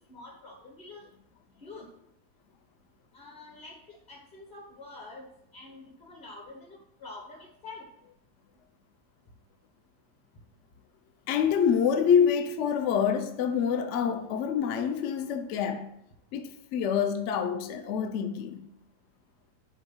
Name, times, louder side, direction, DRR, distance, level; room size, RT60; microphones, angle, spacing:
voice 1, 0.1-1.0 1.6-1.9 3.1-5.3 5.5-7.9, left 3 dB, 40° left, 0.8 m, -46 dB
voice 2, 11.3-15.9 16.3-18.7, left 7 dB, 70° left, 0.6 m, -26 dB
5.2 x 3.5 x 5.5 m
omnidirectional pair, 1.8 m